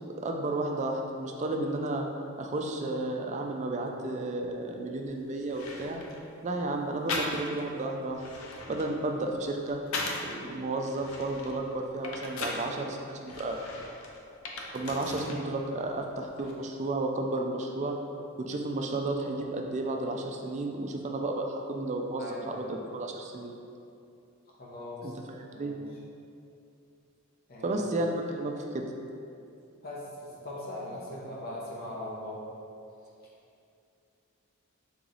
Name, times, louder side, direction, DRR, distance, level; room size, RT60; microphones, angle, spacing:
voice 1, 0.0-2.1 2.4-6.0 6.4-8.2 8.7-9.8 10.2-13.6 14.7-17.9 18.4-23.6 25.0-25.8 27.6-28.9, right 2 dB, 35° right, 2 dB, 0.3 m, -32 dB
sound 1, 5.0-5.1 5.5-6.2 7.1-7.7 8.1-10.4 10.8-12.7 13.3-15.4 15.7-16.5, left 2 dB, 75° left, 0.5 m, -38 dB
voice 2, 22.2-22.7 24.6-25.1 25.5-25.8 27.5-27.8 29.8-30.1 30.4-32.4, left 1 dB, 45° left, -5 dB, 0.9 m, -40 dB
3.9 x 3.0 x 3.9 m, 2.6 s
head